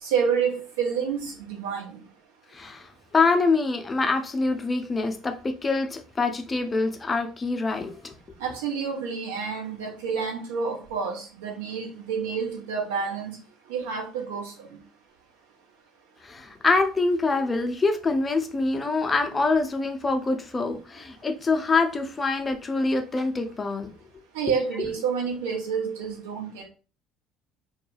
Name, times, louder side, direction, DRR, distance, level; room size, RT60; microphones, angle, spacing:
voice 1, 0.0-2.0 8.4-13.4 13.7-14.7 24.3-26.6, right 6 dB, 75° right, 0.8 m, -29 dB
voice 2, 2.5-2.9 3.1-8.1 16.2-23.9, left 3 dB, 25° left, 0.5 m, -25 dB
2.3 x 2.2 x 3.1 m
figure-of-eight pair, 60°, 0 cm